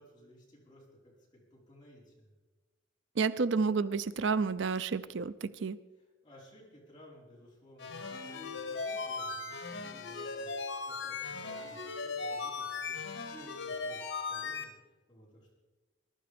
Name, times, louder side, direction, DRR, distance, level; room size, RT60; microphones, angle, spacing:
voice 1, 0.0-2.3 6.0-15.5, equal, 20° left, -5 dB, 5.1 m, -57 dB
voice 2, 3.2-5.8, right 4 dB, 65° right, 15 dB, 0.5 m, -30 dB
sound 1, 7.8-14.6, left 4 dB, 75° left, 1.9 m, -38 dB
21.0 x 11.5 x 5.2 m, 1.2 s
head